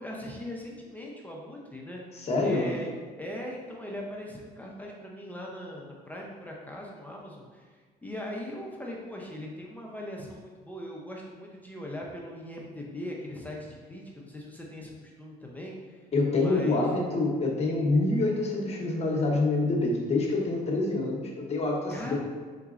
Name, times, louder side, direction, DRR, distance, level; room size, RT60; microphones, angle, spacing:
voice 1, 0.0-7.7 8.0-16.1 16.3-16.9 21.9-22.2, left 1 dB, 10° left, -2 dB, 0.5 m, -40 dB
voice 2, 2.1-2.7 16.1-22.2, left 2 dB, 40° left, -1 dB, 0.9 m, -26 dB
4.5 x 3.9 x 2.4 m, 1.5 s
cardioid pair, 110°, 17 cm